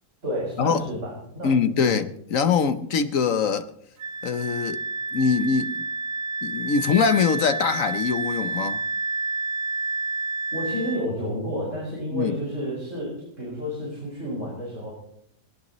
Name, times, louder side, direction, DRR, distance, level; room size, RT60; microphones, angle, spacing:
voice 1, 0.2-2.0 10.5-13.1 13.4-14.9, equal, 45° right, 6.5 m, -30 dB
voice 2, 1.4-3.7 4.2-4.8 5.1-5.9 6.4-8.8 12.1-12.3, left 6 dB, 55° left, 1.2 m, -23 dB
Wind instrument woodwind instrument, 4.0-11.1, right 3 dB, 65° right, 1.1 m, -29 dB
21.5 x 18.5 x 3.1 m
omnidirectional pair, 1.8 m